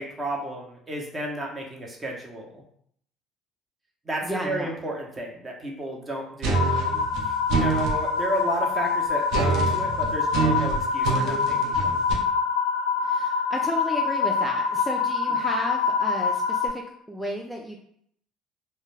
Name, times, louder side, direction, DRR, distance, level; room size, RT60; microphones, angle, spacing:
voice 1, 0.0-2.6 4.0-6.9 7.2-12.0 15.3-15.4, right 1 dB, 30° right, -1 dB, 0.8 m, -32 dB
voice 2, 4.2-4.7 13.0-16.8 17.1-17.8, equal, ahead, -1 dB, 0.4 m, -33 dB
sound 1, 6.4-8.0 9.3-12.1, right 4 dB, 70° right, 0.6 m, -25 dB
sound 2, 6.5-16.7, left 5 dB, 80° left, 0.4 m, -25 dB
2.2 x 2.1 x 3.2 m, 0.67 s
hypercardioid pair, 70°, 0 cm